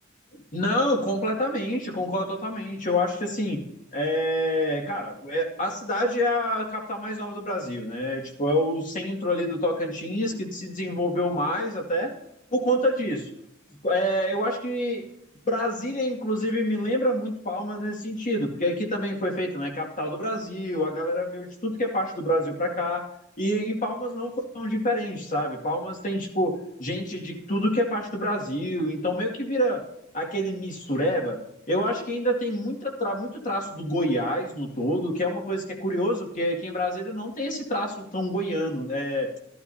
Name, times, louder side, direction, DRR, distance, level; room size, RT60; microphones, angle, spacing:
voice 1, 0.5-3.6 3.9-12.1 12.5-13.3 13.8-15.1 15.5-23.0 23.4-29.9 30.1-31.4 31.7-39.3, equal, 40° left, 1 dB, 2.2 m, -27 dB
15.5 x 12.0 x 2.8 m, 0.81 s
head